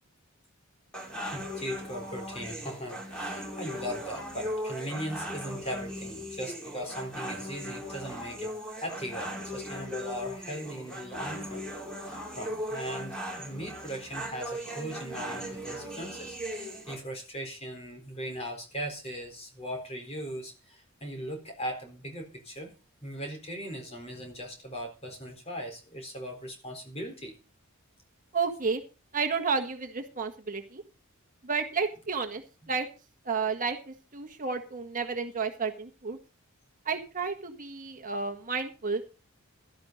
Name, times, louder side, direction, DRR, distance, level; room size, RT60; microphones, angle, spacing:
sound 1, 0.9-16.9, equal, 5° left, 4.8 m, -38 dB
voice 1, 1.3-8.5 8.8-11.7 12.0-22.7 23.0-27.4, equal, 30° left, 4 dB, 4.1 m, -39 dB
voice 2, 28.3-28.8 29.1-30.8 31.4-32.4 32.7-32.9 33.2-36.2 36.8-39.0, right 5 dB, 40° right, 5 dB, 1.5 m, -31 dB
16.0 x 12.5 x 4.0 m, 0.32 s
head